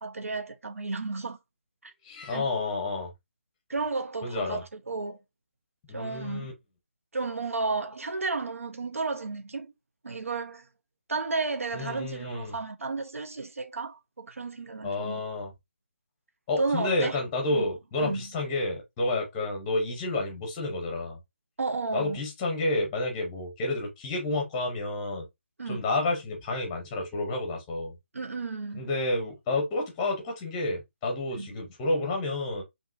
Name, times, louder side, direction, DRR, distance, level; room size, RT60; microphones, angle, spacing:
voice 1, 0.0-1.4 1.8-1.9 2.3-2.5 3.7-5.2 5.9-6.5 7.1-9.7 10.0-10.7 11.1-15.2 16.6-17.2 17.5-17.7 18.0-18.3 21.6-22.2 25.6-25.9 28.1-28.9 31.3-31.5, right 3 dB, 85° right, 0.9 m, -33 dB
voice 2, 2.0-3.1 4.2-4.6 5.9-6.5 11.7-12.6 14.8-15.5 16.5-21.2 21.9-25.3 25.7-27.9 28.7-32.6, left 2 dB, 10° left, 0.7 m, -30 dB
5.3 x 2.9 x 2.6 m
hypercardioid pair, 175°, 7 cm